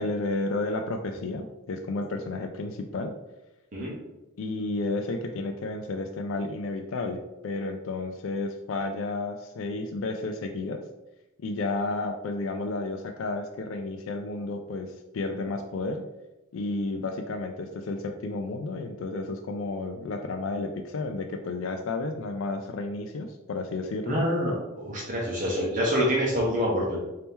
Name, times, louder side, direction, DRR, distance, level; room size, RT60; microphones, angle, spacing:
voice 1, 0.0-3.1 4.4-10.8 11.4-16.0 16.5-24.2, left 2 dB, 85° left, 5 dB, 0.4 m, -32 dB
voice 2, 24.1-27.0, equal, 40° right, -5 dB, 0.9 m, -26 dB
4.2 x 2.8 x 3.5 m, 0.99 s
head